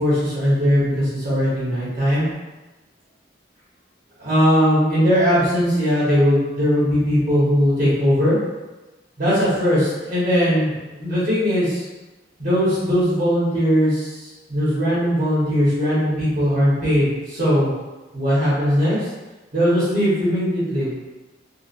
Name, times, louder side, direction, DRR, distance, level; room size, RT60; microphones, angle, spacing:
voice 1, 0.0-2.3 4.2-8.4 9.2-11.8 12.4-17.7 18.1-19.1 19.5-20.9, equal, 50° right, -9 dB, 1.3 m, -19 dB
3.9 x 2.4 x 2.6 m, 1.1 s
head